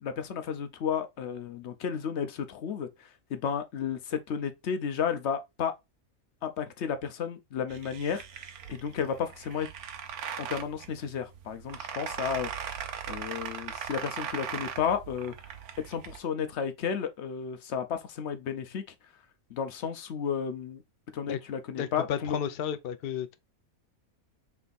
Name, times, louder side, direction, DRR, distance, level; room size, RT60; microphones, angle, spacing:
voice 1, 0.0-5.7 6.4-8.2 8.7-9.7 10.4-12.7 13.1-15.3 15.8-18.8 19.5-20.8 21.1-22.4, left 7 dB, 60° left, 0.9 m, -33 dB
sound 1, 7.7-16.2, right 8 dB, 80° right, 1.2 m, -39 dB
voice 2, 21.8-23.4, left 9 dB, 85° left, 0.5 m, -32 dB
3.5 x 3.4 x 3.9 m
omnidirectional pair, 1.6 m